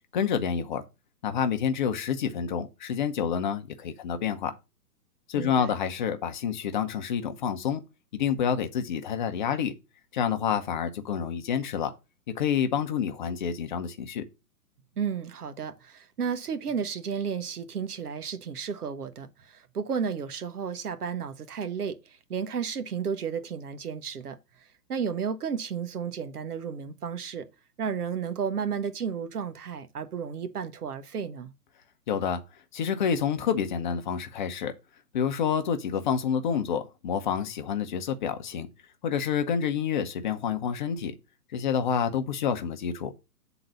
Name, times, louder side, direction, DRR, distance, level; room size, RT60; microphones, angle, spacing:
voice 1, 0.1-0.8 1.2-4.5 5.3-7.8 8.1-9.7 10.1-11.9 12.4-14.2 32.1-32.4 32.7-34.7 35.1-38.7 39.0-41.1 41.5-43.1, left 7 dB, 30° left, 0.8 m, -28 dB
voice 2, 5.4-5.7 15.0-22.0 22.3-24.4 24.9-27.5 27.8-31.5, right 6 dB, 70° right, 1.3 m, -32 dB
7.5 x 4.0 x 5.5 m
hypercardioid pair, 145°, 47 cm